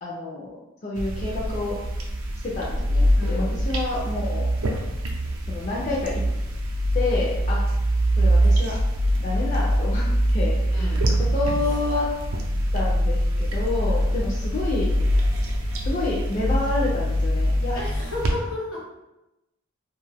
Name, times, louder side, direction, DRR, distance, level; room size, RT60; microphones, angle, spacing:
voice 1, 0.0-1.8 2.4-4.5 5.5-6.2 6.9-7.6 8.2-8.8 9.2-10.1 10.3-11.0 11.3-12.1 12.7-14.9 15.8-17.8, left 2 dB, 35° left, -5 dB, 0.4 m, -29 dB
sound 1, 1.0-18.3, equal, 75° right, 0.5 m, -23 dB
voice 2, 3.2-3.5 10.7-11.1 13.9-14.2 17.7-19.0, left 2 dB, 70° left, -3 dB, 0.9 m, -33 dB
2.5 x 2.3 x 3.3 m, 0.95 s
head